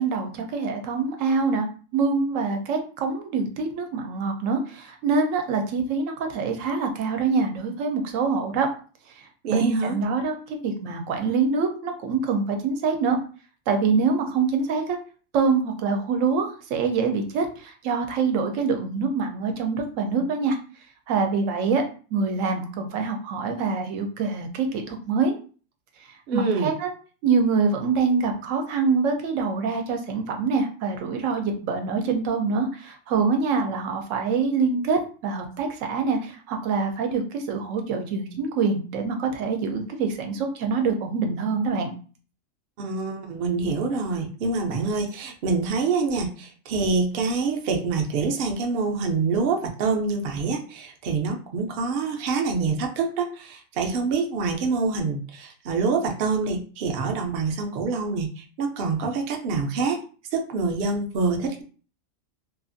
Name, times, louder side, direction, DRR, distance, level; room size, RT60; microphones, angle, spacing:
voice 1, 0.0-1.7 1.9-8.7 9.2-13.2 13.7-15.0 15.3-20.6 21.1-21.8 22.1-25.4 26.0-26.9 27.2-41.9, right 4 dB, 85° right, 4 dB, 1.0 m, -25 dB
voice 2, 9.4-10.0 26.3-26.7 42.8-60.0 60.3-61.6, right 4 dB, 60° right, 3 dB, 0.7 m, -26 dB
2.7 x 2.4 x 2.5 m, 0.39 s
omnidirectional pair, 1.3 m